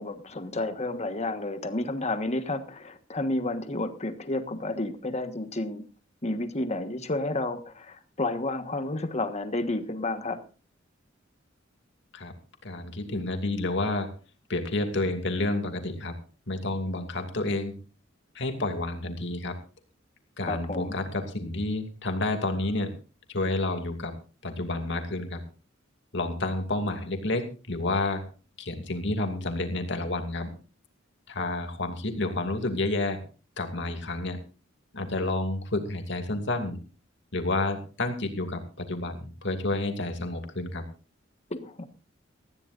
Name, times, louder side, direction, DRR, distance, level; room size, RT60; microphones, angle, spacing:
voice 1, 0.0-5.8 6.2-10.4 20.4-21.0 41.5-41.9, left 2 dB, 35° left, 9 dB, 1.4 m, -31 dB
voice 2, 12.6-14.1 14.5-16.1 16.5-17.8 18.3-19.6 20.4-22.9 23.3-24.1 24.4-25.4 26.1-28.2 28.6-30.5 31.3-33.2 33.6-34.4 34.9-36.8 37.3-40.8, left 2 dB, 65° left, 6 dB, 2.6 m, -30 dB
19.5 x 14.5 x 2.6 m, 0.35 s
head